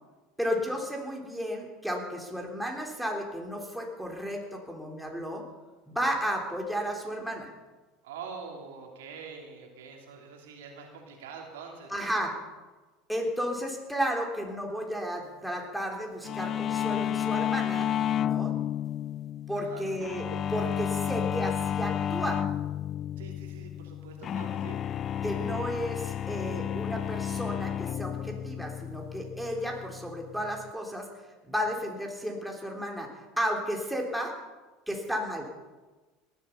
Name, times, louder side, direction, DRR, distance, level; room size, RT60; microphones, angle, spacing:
voice 1, 0.4-5.4 5.9-7.5 11.9-12.4 13.1-17.9 18.2-18.5 19.5-22.4 25.2-31.1 31.4-33.1 33.4-34.4 34.9-35.5, equal, ahead, 0 dB, 3.5 m, -33 dB
voice 2, 8.0-11.9 19.5-19.8 23.2-24.8, right 5 dB, 75° right, 1 dB, 2.9 m, -44 dB
sound 1, 16.3-30.7, left 10 dB, 40° left, 0.4 m, -32 dB
18.5 x 12.0 x 5.7 m, 1.2 s
hypercardioid pair, 75°, 0 cm